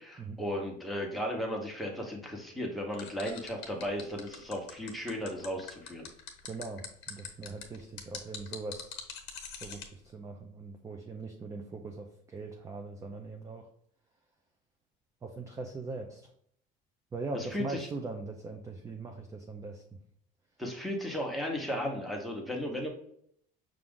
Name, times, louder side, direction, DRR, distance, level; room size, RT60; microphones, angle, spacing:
voice 1, 0.0-6.1 17.3-17.9 20.6-22.9, equal, ahead, 0 dB, 0.9 m, -35 dB
sound 1, 2.9-9.9, left 7 dB, 60° left, 1.0 m, -43 dB
voice 2, 6.4-9.0 9.6-13.7 15.2-16.3 17.1-19.8, right 3 dB, 15° right, 3 dB, 0.4 m, -41 dB
5.9 x 2.5 x 3.6 m, 0.68 s
cardioid pair, 145°, 20 cm